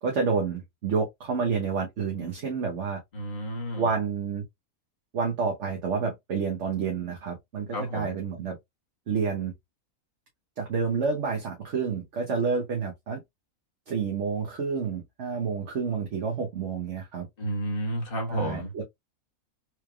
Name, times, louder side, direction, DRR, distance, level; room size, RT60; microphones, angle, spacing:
voice 1, 0.0-3.0 3.8-4.4 5.1-8.6 9.1-9.5 10.6-13.2 13.9-17.3 18.3-18.8, right 5 dB, 55° right, 1.2 m, -29 dB
voice 2, 3.1-3.9 7.7-8.1 17.4-18.7, equal, 40° left, 1.6 m, -31 dB
4.6 x 3.2 x 2.3 m
omnidirectional pair, 1.5 m